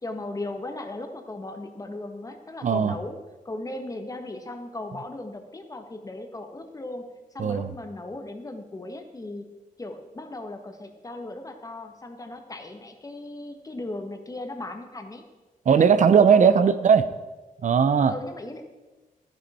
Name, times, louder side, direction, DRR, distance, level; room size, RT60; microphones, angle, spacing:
voice 1, 0.0-3.2 3.4-7.0 7.3-9.5 9.8-15.2 15.7-15.9 16.3-16.7 18.1-18.7, left 2 dB, 25° left, 5 dB, 1.3 m, -37 dB
voice 2, 2.6-3.0 7.4-7.7 15.7-17.0 17.6-18.1, right 6 dB, 60° right, 12 dB, 0.7 m, -18 dB
13.5 x 9.9 x 4.3 m, 1.2 s
wide cardioid pair, 115°, 14 cm